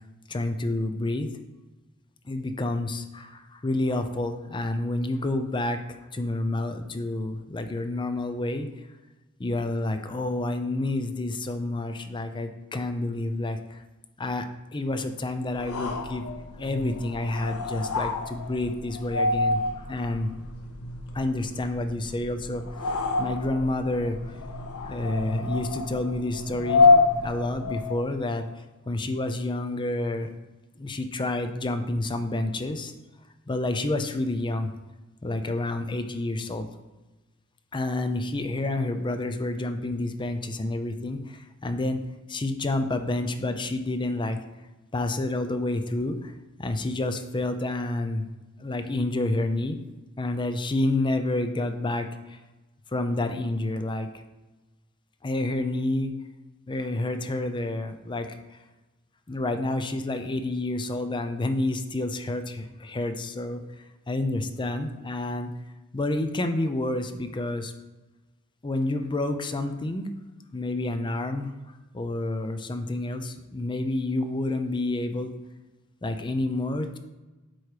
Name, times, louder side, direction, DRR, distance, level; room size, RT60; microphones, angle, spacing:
voice 1, 0.3-1.3 2.2-5.8 6.1-8.7 9.4-13.8 14.2-14.5 14.7-16.2 16.6-20.3 21.1-24.3 24.9-26.9 27.2-28.5 28.9-30.3 30.8-32.9 33.5-34.7 35.2-36.7 37.7-42.0 42.3-44.4 44.9-46.3 46.6-48.2 48.6-49.8 50.2-52.4 52.9-54.1 55.2-56.1 56.7-58.6 59.3-63.6 64.1-65.5 65.9-67.7 68.6-70.1 70.5-71.5 71.9-75.3 76.0-77.0, left 2 dB, 20° left, 7 dB, 0.5 m, -29 dB
sound 1, 15.5-28.1, left 3 dB, 90° left, 0.8 m, -27 dB
8.1 x 3.1 x 4.8 m, 1.1 s
head